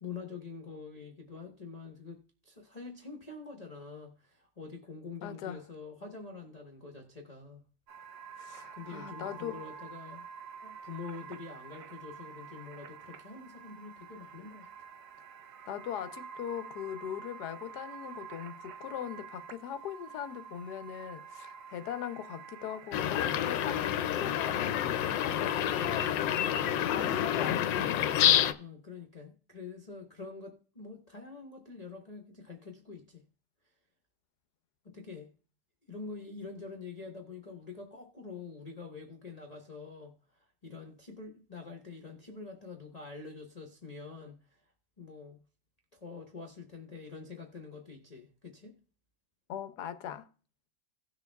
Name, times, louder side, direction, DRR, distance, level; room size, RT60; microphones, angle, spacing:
voice 1, 0.0-7.6 8.7-10.2 10.6-14.7 28.6-33.2 34.8-35.3 35.9-45.4 45.9-48.7, left 4 dB, 25° left, 1.2 m, -46 dB
voice 2, 5.2-5.6 8.4-9.6 15.7-28.2 49.5-50.3, left 10 dB, 70° left, 1.2 m, -40 dB
sound 1, 7.9-24.1, right 6 dB, 65° right, 1.2 m, -48 dB
sound 2, 22.9-28.5, left 10 dB, 85° left, 1.3 m, -28 dB
17.5 x 6.8 x 2.3 m
omnidirectional pair, 2.0 m